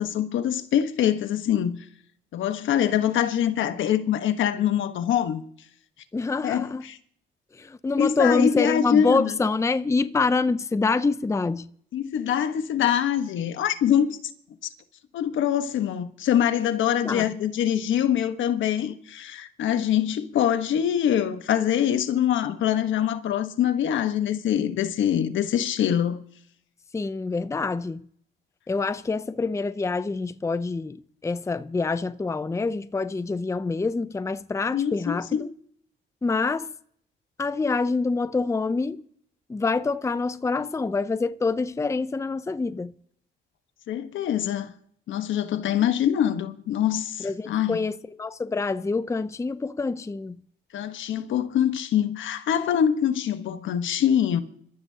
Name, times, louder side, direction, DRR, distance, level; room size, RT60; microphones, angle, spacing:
voice 1, 0.0-1.8 2.3-5.4 6.4-7.0 8.0-9.3 11.9-14.2 15.1-26.2 34.7-35.4 43.9-44.7 45.1-47.8 50.7-54.4, left 9 dB, 75° left, 1.3 m, -24 dB
voice 2, 6.1-6.8 7.5-11.7 17.0-17.3 26.9-28.0 28.7-35.5 36.2-36.7 37.4-39.0 39.5-42.9 47.2-50.4, left 3 dB, 15° left, 0.6 m, -26 dB
26.0 x 14.0 x 2.9 m
cardioid pair, 90°, 20 cm